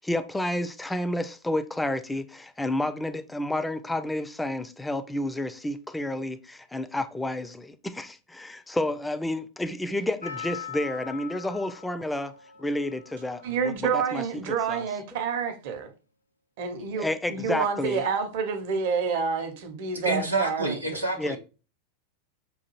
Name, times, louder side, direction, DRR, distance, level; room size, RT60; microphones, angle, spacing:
voice 1, 0.0-12.3 12.6-14.9 17.0-18.0 21.2-21.4, left 1 dB, 5° left, 0.3 m, -30 dB
Percussion, 10.2-14.6 14.8-14.9, left 7 dB, 85° left, 0.4 m, -42 dB
voice 2, 13.4-15.9 16.6-20.8, right 6 dB, 50° right, 0.7 m, -28 dB
voice 3, 19.9-21.4, right 2 dB, 90° right, 0.6 m, -28 dB
5.4 x 2.3 x 3.0 m
figure-of-eight pair, 90°, 0 cm